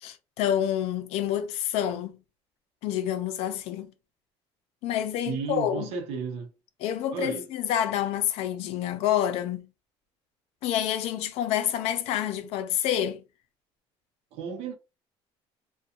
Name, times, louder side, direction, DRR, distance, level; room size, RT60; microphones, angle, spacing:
voice 1, 0.0-2.1 2.8-3.9 4.8-5.9 6.8-9.7 10.6-13.2, left 10 dB, 65° left, 0.5 m, -28 dB
voice 2, 5.3-6.5 7.1-7.4 14.3-14.7, right 6 dB, 70° right, 0.7 m, -33 dB
2.4 x 2.2 x 2.8 m
cardioid pair, 180°, 11 cm